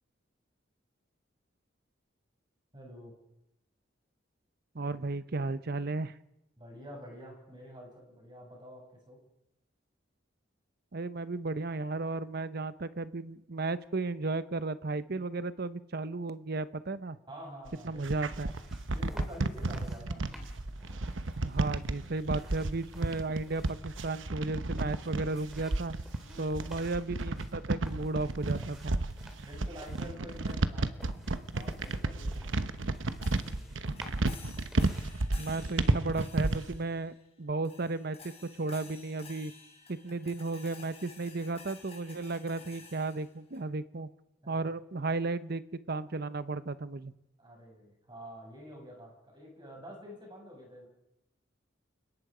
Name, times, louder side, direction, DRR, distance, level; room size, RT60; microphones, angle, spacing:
voice 1, 2.7-3.1 6.6-9.2 17.3-18.3 18.9-20.2 26.2-26.9 29.4-32.6 33.3-33.7 44.4-44.6 47.4-50.9, equal, 25° right, 0 dB, 6.9 m, -48 dB
voice 2, 4.7-6.1 10.9-17.2 17.8-18.5 21.4-25.9 26.4-29.0 35.4-39.5 39.9-44.1 44.5-45.6 45.9-47.1, right 3 dB, 55° right, 14 dB, 0.9 m, -34 dB
sound 1, 17.7-36.8, right 2 dB, 85° right, 1.0 m, -32 dB
sound 2, 18.3-35.2, equal, ahead, 2.5 m, -51 dB
sound 3, 33.2-37.3 37.6-43.6, left 5 dB, 35° left, 4.0 m, -53 dB
29.5 x 18.0 x 5.0 m, 0.89 s
head